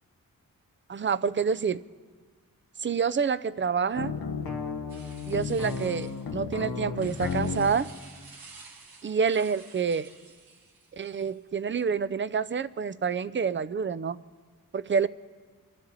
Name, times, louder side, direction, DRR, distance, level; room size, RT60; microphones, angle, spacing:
voice 1, 0.9-1.8 2.8-4.1 5.3-7.9 9.0-10.1 10.9-14.2 14.7-15.1, right 6 dB, 35° right, 16 dB, 0.5 m, -27 dB
sound 1, 3.9-7.8, left 5 dB, 90° left, 1.1 m, -33 dB
sound 2, 4.9-11.5, right 3 dB, 85° right, 1.7 m, -51 dB
25.0 x 13.0 x 4.1 m, 1.5 s
cardioid pair, 65°, 35 cm